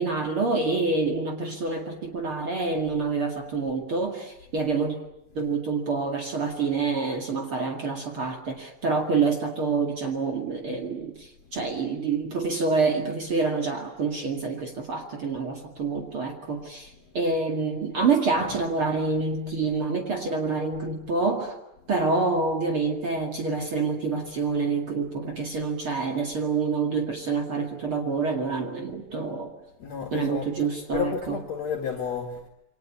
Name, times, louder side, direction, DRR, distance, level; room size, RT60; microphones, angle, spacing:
voice 1, 0.0-5.0 5.3-21.6 21.9-29.5 30.1-31.4, right 4 dB, 40° right, 2.7 m, -27 dB
voice 2, 29.8-32.5, left 7 dB, 55° left, 3.1 m, -32 dB
28.0 x 24.5 x 8.5 m
omnidirectional pair, 3.9 m